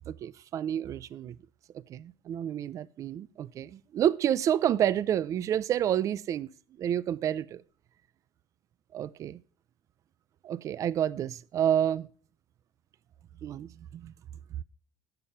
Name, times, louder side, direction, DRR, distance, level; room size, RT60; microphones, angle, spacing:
voice 1, 0.1-1.4 1.9-6.5 6.8-7.6 8.9-9.4 10.4-12.1 13.4-14.1, right 10 dB, 30° right, 0.4 m, -29 dB
10.5 x 7.2 x 5.7 m
cardioid pair, 180°, 11 cm